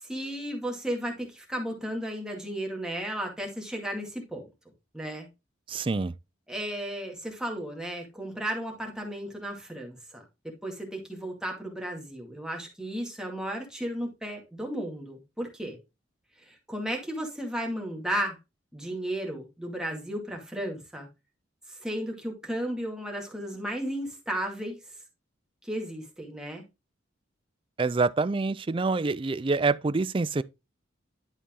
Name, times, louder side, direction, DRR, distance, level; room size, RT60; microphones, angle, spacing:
voice 1, 0.0-4.5 4.9-5.3 6.5-15.8 16.4-18.4 18.7-21.1 21.7-24.8 25.6-26.6, right 1 dB, 5° right, 2.1 m, -34 dB
voice 2, 5.7-6.1 27.8-30.4, right 3 dB, 25° right, 0.4 m, -26 dB
11.5 x 4.1 x 3.7 m
head